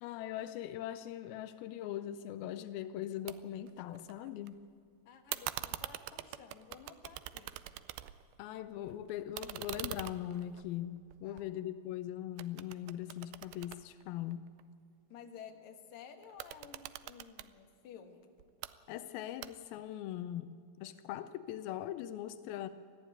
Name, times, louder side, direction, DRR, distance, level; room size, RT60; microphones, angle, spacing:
voice 1, 0.0-4.6 8.4-14.5 18.9-22.7, left 12 dB, 85° left, 11 dB, 2.5 m, -41 dB
sound 1, 3.3-3.4 3.7-4.5 5.3-8.4 8.7-12.0 12.4-14.6 16.2-17.5 18.4-18.7 19.4-19.9, right 15 dB, 85° right, 2.5 m, -44 dB
voice 2, 5.1-7.5 11.2-11.5 15.1-18.3, left 7 dB, 60° left, 4 dB, 2.5 m, -53 dB
19.5 x 14.5 x 9.7 m, 2.4 s
omnidirectional pair, 4.2 m